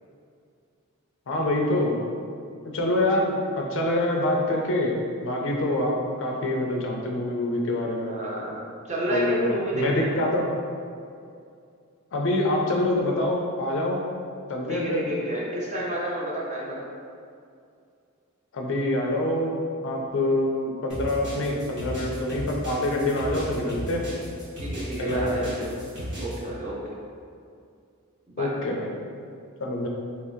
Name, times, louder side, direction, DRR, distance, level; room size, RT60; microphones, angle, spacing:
voice 1, 1.3-2.0 2.6-4.9 5.2-8.2 9.1-10.5 12.1-14.0 14.5-15.0 18.5-19.5 19.8-24.0 25.0-25.7 28.4-28.9 29.6-29.9, left 1 dB, 60° left, 0 dB, 0.5 m, -25 dB
voice 2, 8.0-8.6 8.8-10.3 14.7-16.8 24.6-25.7 26.2-26.8 28.3-28.5, right 1 dB, 35° right, -4 dB, 0.6 m, -30 dB
sound 1, 20.9-26.4, equal, 60° right, 1.3 m, -34 dB
2.9 x 2.7 x 3.5 m, 2.4 s
head